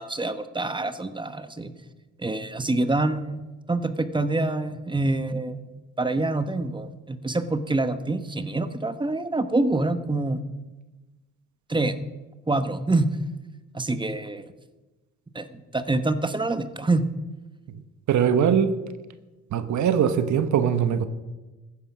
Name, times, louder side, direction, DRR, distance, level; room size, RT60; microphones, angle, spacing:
voice 1, 0.0-1.7 2.2-3.4 3.7-5.6 6.0-10.4 11.7-12.0 12.5-13.1 13.7-14.5 15.3-17.0, right 2 dB, 15° right, 1.1 m, -26 dB
voice 2, 18.1-18.7 19.5-21.1, right 8 dB, 70° right, 1.2 m, -21 dB
15.0 x 9.9 x 6.0 m
cardioid pair, 90°, 30 cm